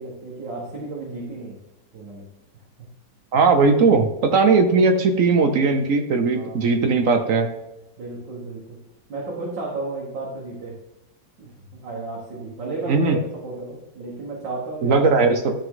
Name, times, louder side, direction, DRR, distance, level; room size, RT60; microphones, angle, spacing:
voice 1, 0.0-1.6 1.9-2.3 6.3-6.7 8.0-8.8 9.1-10.8 11.4-15.1, right 3 dB, 85° right, -4 dB, 2.3 m, -33 dB
voice 2, 3.3-7.5 12.9-13.2 14.8-15.5, right 4 dB, 55° right, 6 dB, 1.0 m, -18 dB
12.0 x 5.1 x 3.9 m, 0.92 s
omnidirectional pair, 1.9 m